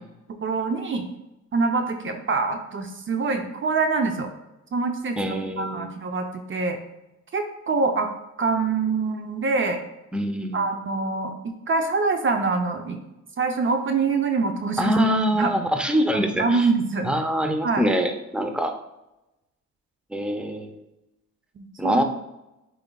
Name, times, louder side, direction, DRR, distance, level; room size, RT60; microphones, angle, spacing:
voice 1, 0.4-1.1 1.5-4.3 4.7-6.8 7.3-8.1 8.4-9.8 10.5-13.0 13.4-14.9 15.3-15.5 16.4-17.1 17.6-17.9 21.6-22.0, right 4 dB, 40° right, 5 dB, 0.7 m, -25 dB
voice 2, 5.2-5.9 10.1-10.6 14.8-16.7 17.0-18.8 20.1-20.8 21.8-22.0, equal, 5° right, 5 dB, 0.7 m, -24 dB
8.8 x 4.6 x 2.3 m, 0.93 s
cardioid pair, 90°, 30 cm